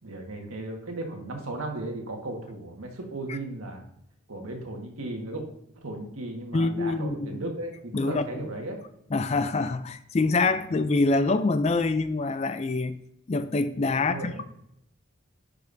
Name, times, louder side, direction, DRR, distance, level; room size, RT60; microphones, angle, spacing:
voice 1, 0.0-3.8 4.3-5.4 5.7-8.8 14.0-14.4, right 2 dB, 85° right, 1.6 m, -36 dB
voice 2, 6.5-7.4 7.9-8.4 9.1-13.0 13.3-14.4, left 3 dB, 30° left, 0.3 m, -25 dB
10.5 x 5.2 x 2.7 m
head